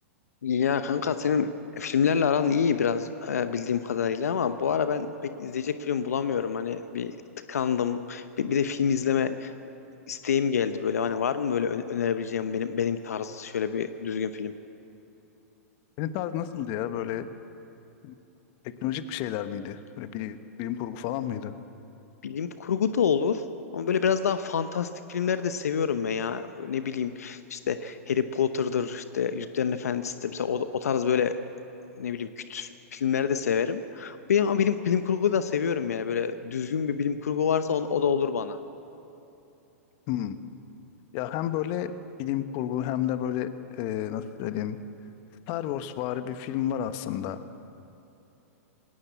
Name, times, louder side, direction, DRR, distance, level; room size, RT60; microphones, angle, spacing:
voice 1, 0.4-7.2 7.5-9.5 10.1-14.5 22.2-23.4 23.7-31.4 31.9-38.6, left 7 dB, 80° left, 10 dB, 0.9 m, -27 dB
voice 2, 16.0-17.3 18.0-18.1 18.8-21.5 40.1-40.4 41.1-41.9 42.2-44.8 45.5-47.5, left 11 dB, 45° left, 11 dB, 1.2 m, -31 dB
20.0 x 17.5 x 8.3 m, 3.0 s
hypercardioid pair, 115°, 8 cm